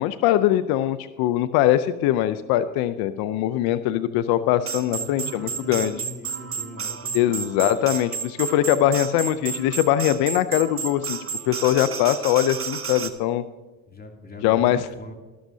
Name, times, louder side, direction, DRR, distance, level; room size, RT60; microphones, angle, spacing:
voice 1, 0.0-6.0 7.1-11.2 11.5-13.4 14.4-14.8, left 12 dB, 80° left, 13 dB, 0.6 m, -22 dB
sound 1, 4.6-13.1, right 6 dB, 35° right, 1.2 m, -32 dB
voice 2, 5.0-7.7 13.9-15.1, left 1 dB, 25° left, 2 dB, 2.8 m, -41 dB
12.5 x 12.5 x 2.7 m, 1.2 s
supercardioid pair, 75°, 37 cm